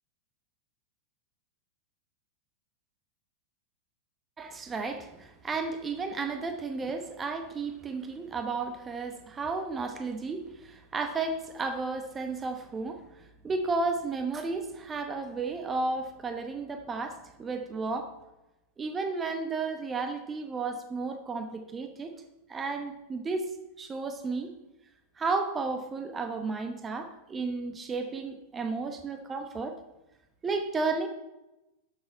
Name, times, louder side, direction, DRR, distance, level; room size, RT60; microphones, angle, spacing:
voice 1, 4.4-13.0 13.4-18.1 18.8-22.1 22.5-23.5 23.8-24.5 25.2-29.8 30.4-31.1, right 3 dB, 20° right, 7 dB, 1.0 m, -33 dB
12.0 x 7.1 x 4.4 m, 0.97 s
figure-of-eight pair, 90°, 0 cm